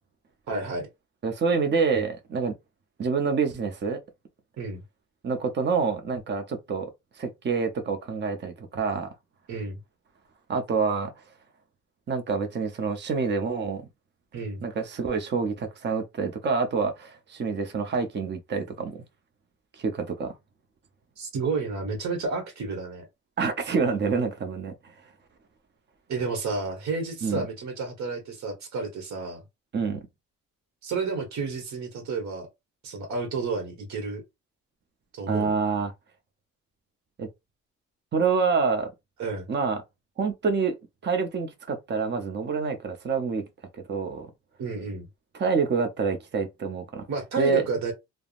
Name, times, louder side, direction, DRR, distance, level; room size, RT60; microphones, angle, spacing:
voice 1, 0.5-0.9 4.6-4.8 9.5-9.8 14.3-14.6 21.2-23.0 26.1-29.4 30.8-32.5 32.8-34.2 35.1-35.5 39.2-39.5 44.6-45.1 47.1-47.9, right 4 dB, 65° right, 1.2 m, -31 dB
voice 2, 1.2-2.5 3.0-4.0 5.2-6.9 7.2-9.1 10.5-11.1 12.1-13.8 14.6-19.0 19.8-20.3 23.4-24.7 27.2-27.5 29.7-30.0 35.3-35.9 37.2-37.3 38.1-38.9 39.5-39.8 40.2-40.8 41.0-43.4 43.7-44.3 45.4-47.0 47.4-47.6, right 5 dB, 35° right, 0.7 m, -27 dB
3.4 x 2.0 x 2.4 m
cardioid pair, 90°, 30 cm